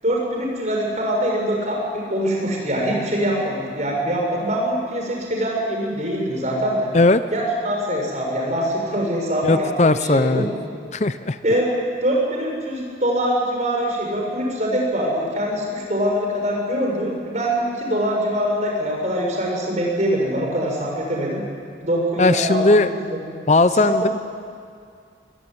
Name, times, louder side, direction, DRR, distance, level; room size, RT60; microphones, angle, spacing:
voice 1, 0.0-6.9 7.3-10.4 11.4-11.7 12.0-21.4 21.8-23.2 23.8-24.1, equal, 40° right, -1 dB, 6.9 m, -23 dB
voice 2, 9.4-10.5 10.9-11.4 22.2-22.9 23.5-24.1, left 2 dB, 40° left, 12 dB, 0.6 m, -17 dB
22.5 x 22.5 x 9.8 m, 2.2 s
head